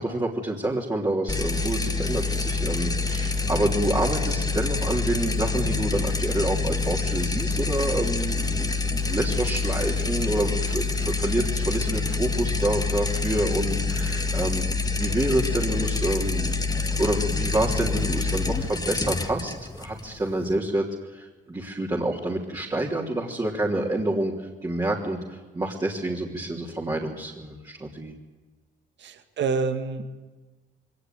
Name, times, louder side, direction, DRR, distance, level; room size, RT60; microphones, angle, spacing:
voice 1, 0.0-16.6 17.0-20.8 21.1-24.3 24.6-28.1, right 1 dB, 20° right, -2 dB, 3.3 m, -28 dB
sound 1, 1.3-20.6, left 4 dB, 20° left, 1.8 m, -26 dB
voice 2, 29.0-30.0, right 5 dB, 65° right, 8 dB, 2.0 m, -27 dB
22.0 x 18.5 x 9.5 m, 1.2 s
cardioid pair, 90°, 20 cm